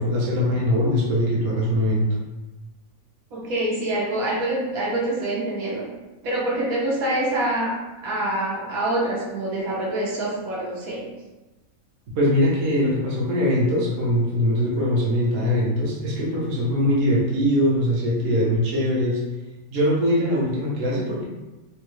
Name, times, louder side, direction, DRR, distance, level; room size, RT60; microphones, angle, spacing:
voice 1, 0.0-2.1 12.1-19.2 19.7-21.2, equal, 65° right, -5 dB, 1.2 m, -22 dB
voice 2, 3.3-5.8 6.2-11.0, right 1 dB, 90° right, -5 dB, 1.3 m, -26 dB
3.5 x 2.3 x 3.0 m, 1.1 s
omnidirectional pair, 1.5 m